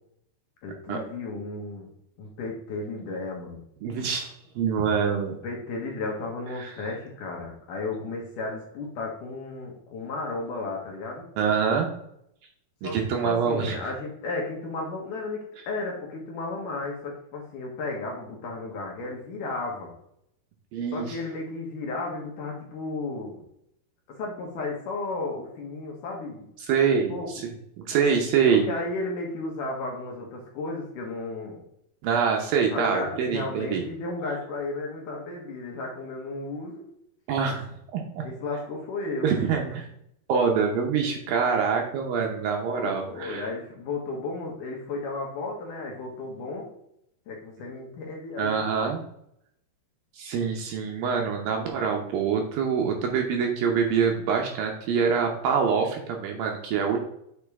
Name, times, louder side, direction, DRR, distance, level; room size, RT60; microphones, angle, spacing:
voice 1, 0.6-1.9 2.2-3.6 5.2-11.2 12.8-13.0 13.2-19.9 20.9-23.4 24.2-26.5 27.1-27.3 28.5-31.6 32.7-36.8 38.2-39.3 42.7-46.7 47.3-48.8, left 3 dB, 65° left, -1 dB, 2.4 m, -34 dB
voice 2, 3.8-5.3 6.6-6.7 11.4-11.9 12.8-13.9 20.7-21.2 26.7-27.2 27.9-28.7 32.0-33.8 37.3-38.2 39.2-39.9 40.3-43.5 48.4-49.0 50.1-57.0, right 6 dB, 75° right, 2 dB, 2.3 m, -25 dB
8.3 x 5.0 x 3.5 m, 0.76 s
omnidirectional pair, 4.7 m